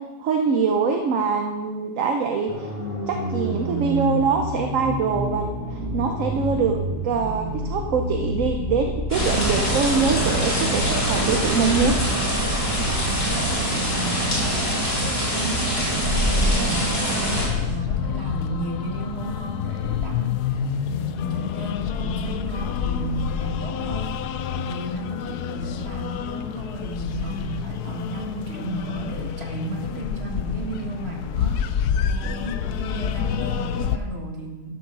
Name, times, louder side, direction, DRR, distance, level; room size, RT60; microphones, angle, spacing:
voice 1, 0.2-2.7 3.1-5.4 5.7-6.8 7.0-11.9, right 5 dB, 55° right, 4 dB, 1.1 m, -23 dB
sound 1, 2.5-9.5, equal, 10° right, 2.5 m, -29 dB
sound 2, 9.1-17.5, equal, 35° left, 3.4 m, -23 dB
voice 2, 13.7-14.6 15.0-24.1 24.5-31.6 32.2-34.7, right 2 dB, 40° right, 1 dB, 1.8 m, -33 dB
sound 3, 17.3-34.0, left 8 dB, 75° left, 1.1 m, -28 dB
12.0 x 7.3 x 6.1 m, 1.2 s
omnidirectional pair, 1.8 m